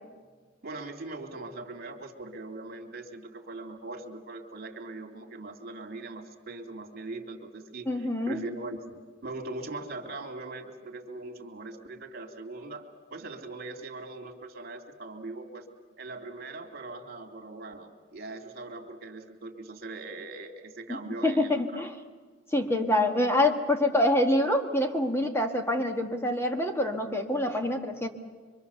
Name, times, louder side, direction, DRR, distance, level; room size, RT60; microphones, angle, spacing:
voice 1, 0.6-15.6 16.0-21.8, right 2 dB, 55° right, 2 dB, 2.6 m, -41 dB
voice 2, 7.9-8.4 20.9-21.0 21.2-21.9 22.5-28.1, left 1 dB, 15° left, 4 dB, 1.6 m, -26 dB
24.5 x 24.5 x 7.0 m, 1.5 s
head